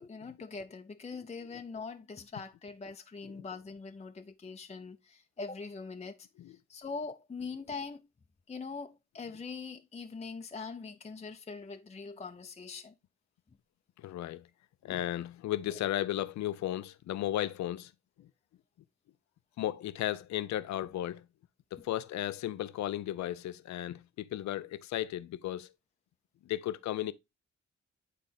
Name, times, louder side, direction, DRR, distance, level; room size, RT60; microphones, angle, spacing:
voice 1, 0.0-6.3 6.7-8.1 8.5-12.9 15.7-15.8, left 4 dB, 25° left, 0.6 m, -42 dB
voice 2, 14.0-14.5 14.8-17.9 18.2-18.3 19.6-21.2 21.7-25.7 26.4-27.1, left 13 dB, 70° left, 0.5 m, -35 dB
9.2 x 3.7 x 3.4 m
supercardioid pair, 55°, 29 cm